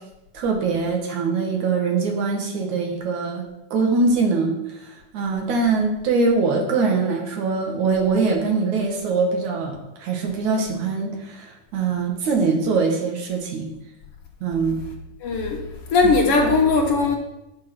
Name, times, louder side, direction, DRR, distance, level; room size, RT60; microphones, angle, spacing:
voice 1, 0.3-3.4 3.7-13.7 14.4-14.8 16.0-16.1 16.4-16.5, right 4 dB, 65° right, 2 dB, 2.9 m, -23 dB
voice 2, 15.2-15.6 15.9-17.2, left 4 dB, 60° left, 1 dB, 1.8 m, -18 dB
9.8 x 6.8 x 6.1 m, 0.94 s
omnidirectional pair, 3.8 m